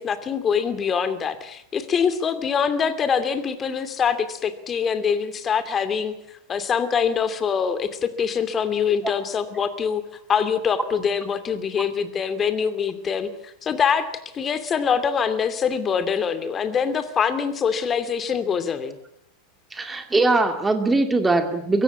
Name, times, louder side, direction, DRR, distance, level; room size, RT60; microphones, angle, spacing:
voice 1, 0.0-6.1 6.5-10.0 10.3-14.1 14.3-19.0, left 6 dB, 25° left, 11 dB, 2.6 m, -24 dB
voice 2, 19.7-21.8, right 3 dB, 10° right, 7 dB, 2.3 m, -21 dB
23.5 x 16.5 x 8.6 m, 0.77 s
hypercardioid pair, 95°, 0 cm